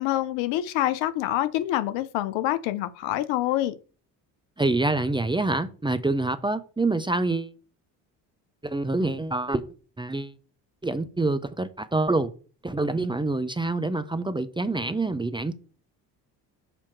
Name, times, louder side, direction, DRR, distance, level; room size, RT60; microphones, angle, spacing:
voice 1, 0.0-3.8, left 14 dB, 70° left, 0.7 m, -26 dB
voice 2, 4.6-7.5 8.6-9.7 10.0-10.4 10.8-12.3 12.6-15.5, right 2 dB, 10° right, 0.5 m, -26 dB
6.8 x 2.9 x 5.7 m
hypercardioid pair, 55°, 47 cm